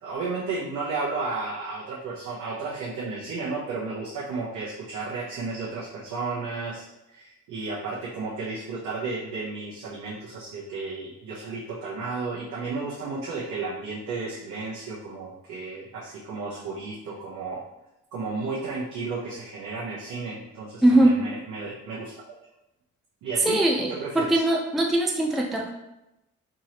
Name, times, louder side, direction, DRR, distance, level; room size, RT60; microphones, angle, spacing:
voice 1, 0.0-17.6 18.1-22.2 23.2-23.6 23.9-24.4, right 3 dB, 75° right, -8 dB, 1.0 m, -33 dB
voice 2, 20.8-21.2 23.4-25.7, right 1 dB, ahead, 0 dB, 0.4 m, -21 dB
3.7 x 3.0 x 2.9 m, 0.91 s
cardioid pair, 90°, 30 cm